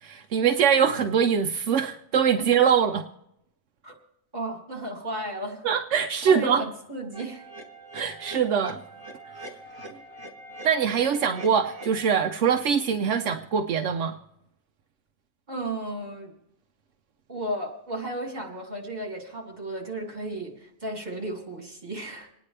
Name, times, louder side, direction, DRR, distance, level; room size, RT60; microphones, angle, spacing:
voice 1, 0.0-3.0 5.6-6.6 7.9-8.8 10.6-14.2, right 7 dB, 80° right, 5 dB, 1.0 m, -23 dB
voice 2, 4.3-5.6 6.3-7.4 9.9-10.0 15.5-16.3 17.3-22.3, right 1 dB, 40° right, 0 dB, 2.7 m, -34 dB
sound 1, 7.1-12.1, right 1 dB, 20° right, 1.6 m, -43 dB
27.5 x 9.9 x 3.3 m, 0.81 s
omnidirectional pair, 1.2 m